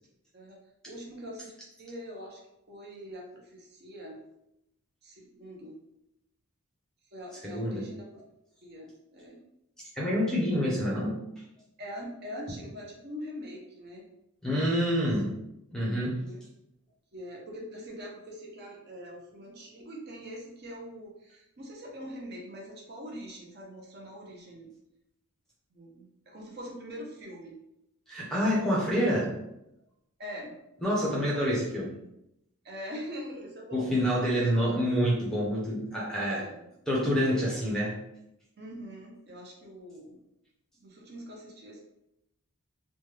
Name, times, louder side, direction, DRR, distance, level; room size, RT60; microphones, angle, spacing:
voice 1, 0.9-1.5 1.8-2.4 2.7-4.2 5.0-5.8 7.1-8.0 8.6-9.4 11.8-14.1 16.0-16.4 17.1-24.7 25.7-27.5 30.2-30.5 32.6-34.0 34.4-34.5 36.3-36.6 38.6-40.2 40.8-41.8, equal, 45° right, -1 dB, 0.6 m, -43 dB
voice 2, 7.4-7.9 9.9-11.2 14.4-15.3 15.7-16.2 28.1-29.3 30.8-32.0 33.7-36.4 36.9-37.9, equal, 5° left, -5 dB, 0.6 m, -27 dB
3.1 x 2.2 x 3.2 m, 0.84 s
head